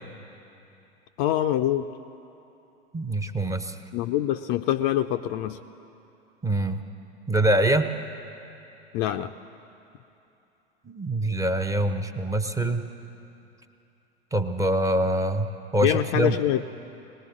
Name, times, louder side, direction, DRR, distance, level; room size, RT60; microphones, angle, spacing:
voice 1, 1.2-1.9 3.9-5.6 8.9-9.3 15.8-16.6, left 12 dB, 40° left, 9 dB, 0.4 m, -25 dB
voice 2, 2.9-3.8 6.4-6.8 7.3-7.9 10.8-12.9 14.3-16.4, right 1 dB, 10° right, 7 dB, 0.6 m, -24 dB
21.0 x 18.5 x 3.7 m, 2.8 s
figure-of-eight pair, 90°, 33 cm